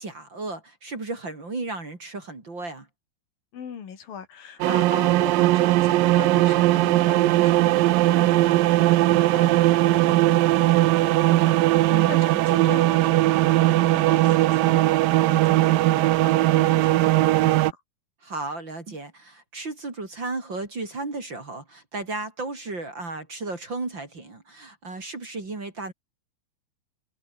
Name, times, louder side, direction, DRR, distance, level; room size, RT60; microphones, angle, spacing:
voice 1, 0.0-2.9 11.9-12.1 18.2-25.9, right 3 dB, 30° right, 4.0 m, -34 dB
voice 2, 3.5-17.8, left 7 dB, 70° left, 4.6 m, -40 dB
sound 1, 4.6-17.7, right 17 dB, 75° right, 2.4 m, -19 dB
omnidirectional pair, 4.3 m